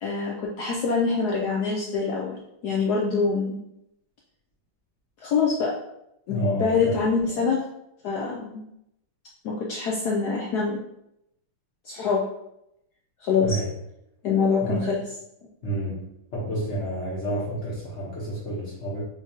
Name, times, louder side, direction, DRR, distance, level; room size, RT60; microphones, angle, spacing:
voice 1, 0.0-2.4 2.6-3.6 5.2-5.7 6.3-7.6 8.0-8.6 9.4-10.8 11.8-12.2 13.2-13.6 14.2-15.0, left 5 dB, 85° left, -2 dB, 0.8 m, -25 dB
voice 2, 6.3-7.0 13.4-13.7 14.6-14.9 15.6-19.0, right 1 dB, 40° left, -7 dB, 1.3 m, -30 dB
5.9 x 3.0 x 2.9 m, 0.81 s
omnidirectional pair, 2.4 m